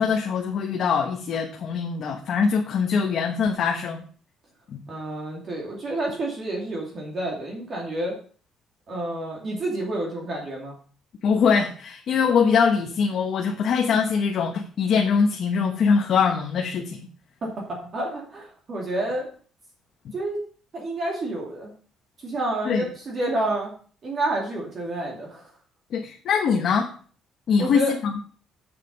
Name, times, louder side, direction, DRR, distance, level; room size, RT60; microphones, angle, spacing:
voice 1, 0.0-4.0 4.7-4.8 11.2-17.1 22.6-22.9 25.9-26.9 27.5-28.2, left 6 dB, 45° left, 1 dB, 1.2 m, -23 dB
voice 2, 4.9-8.2 8.9-10.7 17.4-19.3 20.1-20.4 20.7-21.7 22.2-23.7 24.0-25.4 27.6-27.9, right 1 dB, 35° right, -2 dB, 2.6 m, -29 dB
7.6 x 7.3 x 5.4 m, 0.43 s
cardioid pair, 170°, 0 cm